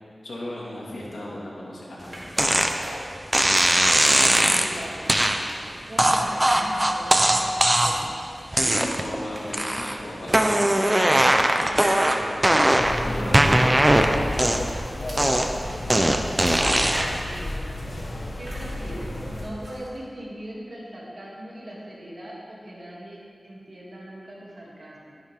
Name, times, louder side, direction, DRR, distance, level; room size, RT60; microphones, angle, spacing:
voice 1, 0.2-2.3 8.7-10.8 11.2-13.8 18.6-19.0, left 1 dB, 85° left, -5 dB, 2.5 m, -37 dB
sound 1, 2.0-3.6 4.0-7.0 7.3-12.5 13.2-13.4 13.7-13.8 15.1-15.3 16.4-17.6 18.5-18.9 19.4-20.0, right 1 dB, 35° right, 3.0 m, -41 dB
sound 2, 2.4-2.7 3.3-4.7 5.1-5.4 6.0-8.1 8.5-9.1 9.5-10.0 10.3-13.0 13.3-14.8 15.2-17.2, right 1 dB, 20° right, 0.9 m, -20 dB
voice 2, 4.2-5.5 5.9-8.1 8.6-8.9 12.6-13.6 16.5-16.9 18.4-25.2, right 1 dB, 55° right, -5 dB, 3.1 m, -40 dB
sound 3, 12.8-19.5, left 1 dB, 55° left, 1.7 m, -32 dB
14.0 x 10.5 x 3.8 m, 2.4 s
wide cardioid pair, 55°, 0 cm